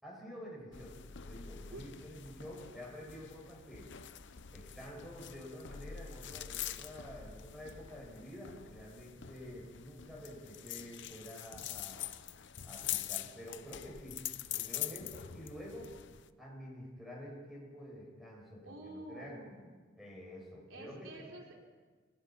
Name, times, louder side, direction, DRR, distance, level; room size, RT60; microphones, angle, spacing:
voice 1, 0.0-4.0 4.5-12.1 12.6-14.2 14.5-15.9 16.4-19.3 20.0-21.3, equal, ahead, -3 dB, 6.3 m, -49 dB
sound 1, 0.7-16.3, left 11 dB, 60° left, 0.8 m, -44 dB
voice 2, 18.6-19.7 20.7-21.6, right 1 dB, 85° right, 0 dB, 3.9 m, -49 dB
29.0 x 17.0 x 5.9 m, 1.4 s
head